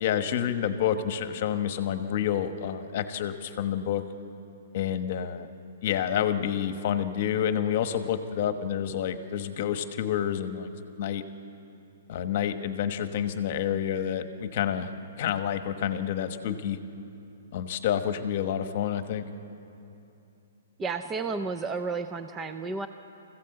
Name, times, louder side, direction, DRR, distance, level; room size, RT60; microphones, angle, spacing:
voice 1, 0.0-4.0 4.7-5.5 5.8-11.2 12.1-14.9 15.2-16.8 17.5-19.2, left 9 dB, 45° left, 9 dB, 1.2 m, -29 dB
voice 2, 20.8-22.9, right 4 dB, 15° right, 8 dB, 0.5 m, -32 dB
24.5 x 15.5 x 7.9 m, 2.8 s
hypercardioid pair, 165°, 0 cm